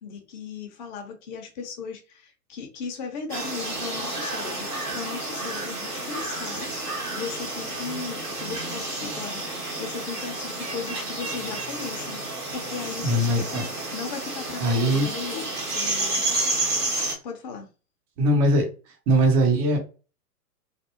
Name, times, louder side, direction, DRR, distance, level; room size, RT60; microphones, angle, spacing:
voice 1, 0.0-12.2 12.5-15.5 15.7-16.2 17.2-17.7, left 5 dB, 30° left, 0.8 m, -37 dB
sound 1, 3.3-17.1, right 2 dB, 80° right, 1.3 m, -30 dB
voice 2, 13.0-13.6 14.6-15.1 18.2-18.7 19.1-19.8, right 1 dB, 20° right, 0.6 m, -20 dB
3.3 x 2.0 x 2.9 m
figure-of-eight pair, 110°, 46 cm